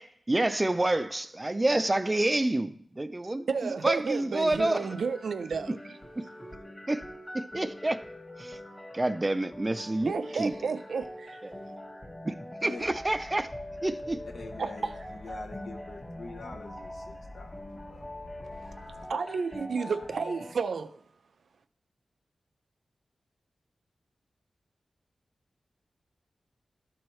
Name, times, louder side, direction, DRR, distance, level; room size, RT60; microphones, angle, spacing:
voice 1, 0.0-4.9 5.7-5.8 6.2-6.3 6.9-7.0 7.3-8.0 8.4-8.6 8.9-10.5 11.4-11.5 12.2-12.3 12.6-13.5 13.8-14.2, right 2 dB, 20° right, 0.4 m, -28 dB
voice 2, 3.5-5.8 10.1-11.4 14.6-14.9 19.1-21.0, right 5 dB, 75° right, 0.5 m, -31 dB
sound 1, 4.5-20.5, left 1 dB, 15° left, 1.1 m, -43 dB
sound 2, 12.8-19.1, left 1 dB, 50° left, 0.9 m, -49 dB
voice 3, 14.3-18.1, left 3 dB, 75° left, 0.7 m, -45 dB
13.0 x 4.7 x 3.1 m
wide cardioid pair, 140°, 0 cm